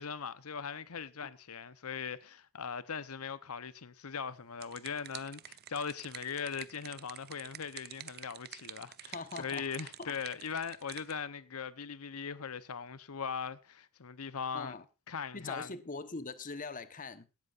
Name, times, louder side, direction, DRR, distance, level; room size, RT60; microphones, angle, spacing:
voice 1, 0.0-14.7 15.1-15.7, left 6 dB, 85° left, 0.8 m, -40 dB
sound 1, 4.3-11.2, right 11 dB, 45° right, 0.8 m, -49 dB
voice 2, 9.1-9.6 10.0-10.2 14.5-14.8 15.3-17.3, left 3 dB, 40° left, 1.1 m, -42 dB
17.5 x 13.5 x 2.5 m
head